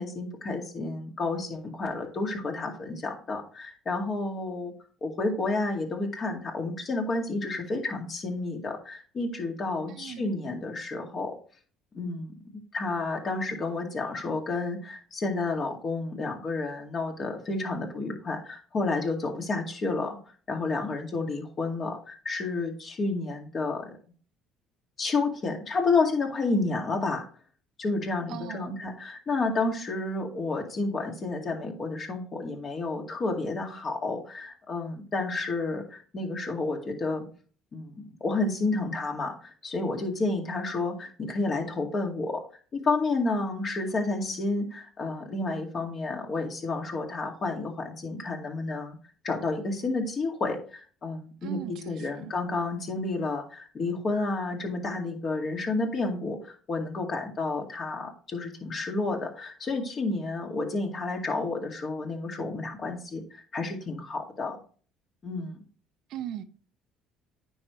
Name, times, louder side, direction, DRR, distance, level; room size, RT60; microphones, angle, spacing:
voice 1, 0.0-4.7 5.0-11.3 11.9-12.3 12.7-20.2 20.5-23.9 25.0-27.2 27.8-37.2 37.7-42.4 42.7-49.0 49.2-64.6 65.2-65.6, left 3 dB, 45° left, 2.2 m, -30 dB
voice 2, 9.9-10.3 28.3-28.8 51.4-52.3 66.1-66.4, right 11 dB, 65° right, 0.6 m, -39 dB
9.3 x 5.4 x 3.2 m
supercardioid pair, 75°, 0 cm